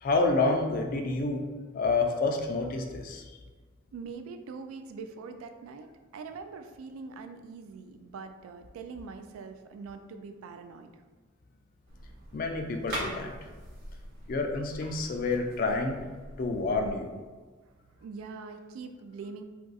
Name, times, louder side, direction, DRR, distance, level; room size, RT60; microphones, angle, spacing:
voice 1, 0.0-1.4 1.7-3.2 12.3-13.3 14.3-16.0 16.4-17.1, left 3 dB, 45° left, 4 dB, 0.3 m, -28 dB
voice 2, 3.9-10.9 18.0-19.4, right 4 dB, 90° right, 7 dB, 0.3 m, -43 dB
sound 1, 11.9-16.9, equal, 50° right, 0.8 m, -42 dB
2.4 x 2.3 x 3.9 m, 1.4 s
head